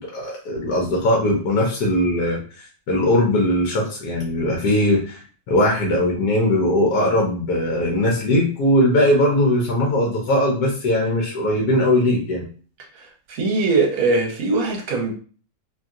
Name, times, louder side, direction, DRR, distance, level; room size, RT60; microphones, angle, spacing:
voice 1, 0.0-12.4, left 1 dB, 75° left, 0 dB, 1.2 m, -20 dB
voice 2, 13.4-15.1, right 3 dB, 60° right, 1 dB, 1.1 m, -20 dB
3.0 x 2.7 x 2.4 m, 0.40 s
omnidirectional pair, 1.8 m